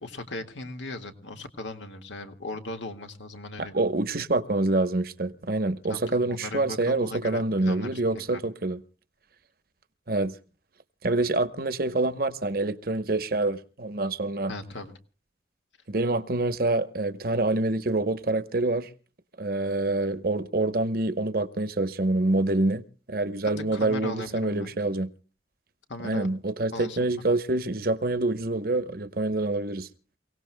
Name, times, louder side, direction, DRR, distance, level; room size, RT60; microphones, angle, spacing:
voice 1, 0.0-3.8 5.9-8.4 14.5-14.9 23.4-24.7 25.9-26.3 26.7-27.0, left 2 dB, 80° left, 1.8 m, -38 dB
voice 2, 3.6-8.8 10.1-10.4 11.0-14.5 15.9-18.9 19.4-25.1 26.0-29.9, right 2 dB, 50° right, 0.9 m, -26 dB
29.0 x 17.5 x 2.2 m
head